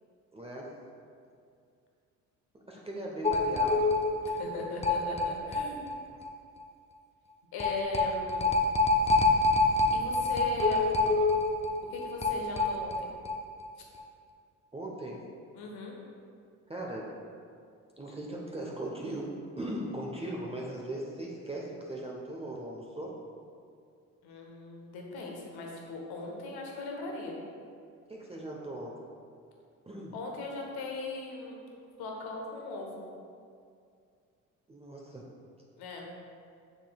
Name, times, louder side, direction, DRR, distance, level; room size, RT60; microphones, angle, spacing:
voice 1, 0.3-0.8 2.7-3.9 14.7-15.2 16.7-17.2 18.0-23.2 28.1-29.0 29.9-30.1 34.7-35.3, right 1 dB, 15° right, -2 dB, 0.8 m, -39 dB
sound 1, 3.2-6.0 6.2-6.3 6.6-6.7 7.6-13.4 13.6-13.7 14.0-14.1, left 3 dB, 15° left, 0.6 m, -26 dB
voice 2, 4.2-5.8 7.5-8.6 9.9-10.8 11.8-13.1 13.8-13.9 15.5-15.9 24.2-27.4 30.1-31.6 32.0-33.0 35.8-36.1, left 3 dB, 65° left, 0 dB, 1.2 m, -38 dB
6.8 x 6.2 x 2.3 m, 2.3 s
hypercardioid pair, 45°, 41 cm